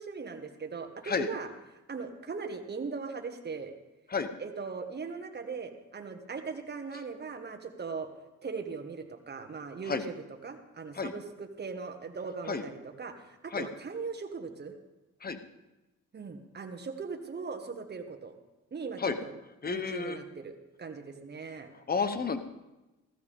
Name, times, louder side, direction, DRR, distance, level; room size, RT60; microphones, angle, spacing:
voice 1, 0.0-1.5 1.9-3.7 4.4-8.1 8.4-14.7 16.1-18.4 18.7-19.3 19.7-21.7, right 5 dB, 35° right, 5 dB, 1.7 m, -39 dB
voice 2, 19.6-20.2 21.9-22.4, left 5 dB, 30° left, 10 dB, 1.1 m, -30 dB
15.5 x 14.5 x 3.7 m, 1.0 s
cardioid pair, 90°, 30 cm